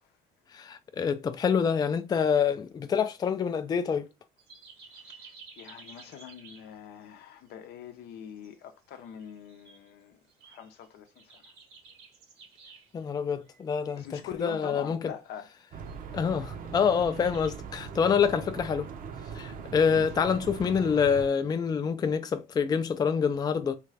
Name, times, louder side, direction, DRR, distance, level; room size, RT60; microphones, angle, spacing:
voice 1, 0.5-4.1 12.9-15.0 16.1-18.9 19.3-23.8, left 6 dB, 25° left, 0.3 m, -26 dB
sound 1, 4.4-6.8 7.0-7.2 7.5-7.6 8.3-9.9 10.3-13.0 13.4-15.2 15.5-16.3 16.6-17.6, right 4 dB, 85° right, 1.2 m, -53 dB
voice 2, 4.9-11.4 14.0-15.5 19.9-20.0, left 9 dB, 80° left, 0.6 m, -43 dB
sound 2, 15.7-21.3, right 6 dB, 55° right, 0.6 m, -40 dB
3.2 x 2.4 x 3.2 m
cardioid pair, 110°, 17 cm